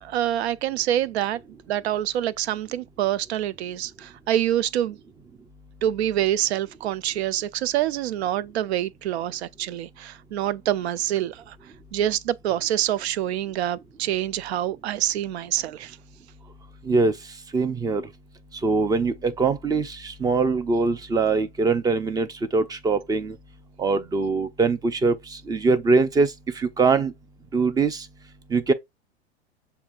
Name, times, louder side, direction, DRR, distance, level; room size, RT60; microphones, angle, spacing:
voice 1, 0.0-1.4 1.7-5.0 5.8-11.6 11.9-16.0, right 12 dB, 70° right, 0.5 m, -26 dB
voice 2, 17.5-18.0 18.6-22.3 22.5-23.4 23.8-27.1 27.5-28.1 28.5-28.7, right 4 dB, 10° right, 0.5 m, -22 dB
6.9 x 2.7 x 2.5 m
hypercardioid pair, 105°, 33 cm